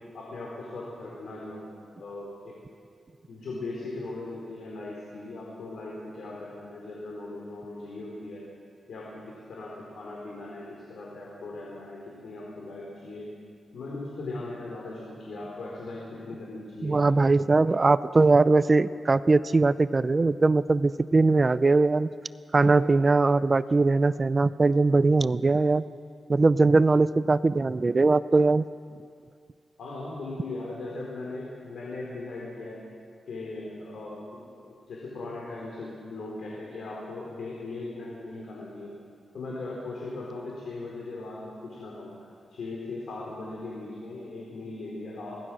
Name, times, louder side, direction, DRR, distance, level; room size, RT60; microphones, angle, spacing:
voice 1, 0.1-1.7 2.0-2.5 3.3-8.4 8.9-13.3 13.7-17.0 29.8-32.8 33.3-38.9 39.3-42.1 42.5-45.4, left 2 dB, 75° left, -3 dB, 4.2 m, -38 dB
voice 2, 16.8-22.1 22.5-25.8 26.3-28.6, right 3 dB, 30° right, 15 dB, 0.5 m, -21 dB
23.5 x 18.5 x 6.3 m, 2.3 s
wide cardioid pair, 105°, 0 cm